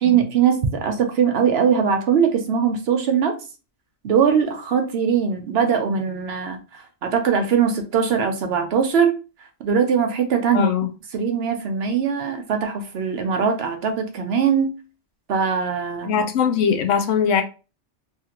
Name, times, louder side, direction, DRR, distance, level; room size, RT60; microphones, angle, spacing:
voice 1, 0.0-3.4 4.0-9.1 9.6-10.7 11.1-14.7 15.3-16.2, right 7 dB, 65° right, 0.8 m, -21 dB
voice 2, 10.5-10.9 16.0-17.4, left 7 dB, 85° left, 1.0 m, -20 dB
2.8 x 2.5 x 2.9 m
omnidirectional pair, 1.2 m